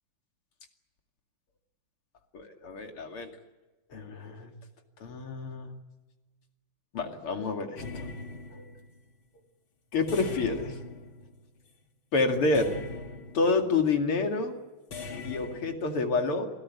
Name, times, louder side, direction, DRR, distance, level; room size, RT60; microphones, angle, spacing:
voice 1, 2.3-3.3 3.9-4.5 5.0-5.7 6.9-8.0 8.5-8.6 9.9-10.7 12.1-12.7 13.3-14.5 15.2-16.5, left 3 dB, 90° left, 4 dB, 3.3 m, -28 dB
sound 1, 7.7-9.0 10.1-11.7 12.5-13.7 14.9-15.8, left 3 dB, 65° left, 2.9 m, -41 dB
27.0 x 17.0 x 9.7 m, 1.2 s
omnidirectional pair, 2.3 m